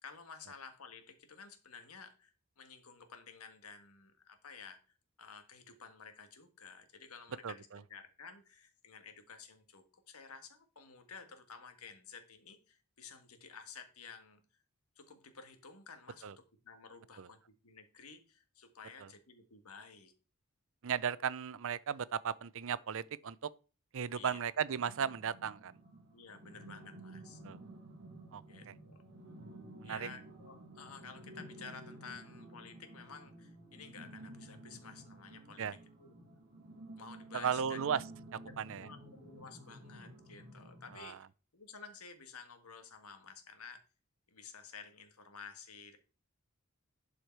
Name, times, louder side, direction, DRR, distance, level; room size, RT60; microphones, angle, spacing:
voice 1, 0.0-4.8 5.2-14.4 14.9-20.1 24.1-24.4 26.1-27.4 28.4-29.0 29.8-35.7 36.0-36.2 37.0-37.9 38.4-41.2 41.5-43.8 44.3-46.0, left 5 dB, 80° left, 1.6 m, -53 dB
voice 2, 20.8-23.5 23.9-25.7 27.4-27.6 28.3-28.4 29.8-30.1 35.6-35.7 37.3-38.0 38.6-38.9 40.9-41.2, right 7 dB, 65° right, 0.5 m, -35 dB
sound 1, 24.7-41.0, right 1 dB, 50° right, 1.6 m, -53 dB
11.5 x 5.0 x 4.6 m
head